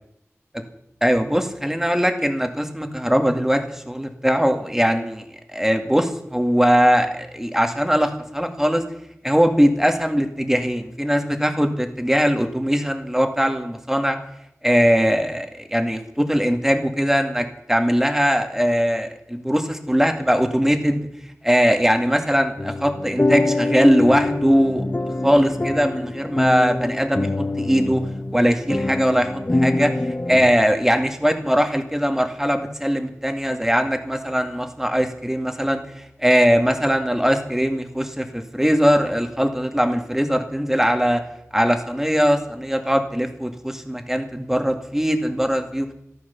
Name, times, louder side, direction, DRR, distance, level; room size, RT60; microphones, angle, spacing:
voice 1, 1.0-5.2 5.5-8.8 9.2-14.2 14.6-21.1 21.4-24.8 25.2-28.0 28.3-29.9 30.3-35.8 36.2-41.2 41.5-45.9, equal, 10° right, 5 dB, 2.1 m, -20 dB
sound 1, 22.6-30.6, left 2 dB, 35° left, 0.9 m, -24 dB
14.0 x 12.5 x 7.0 m, 0.79 s
wide cardioid pair, 60°, 5 cm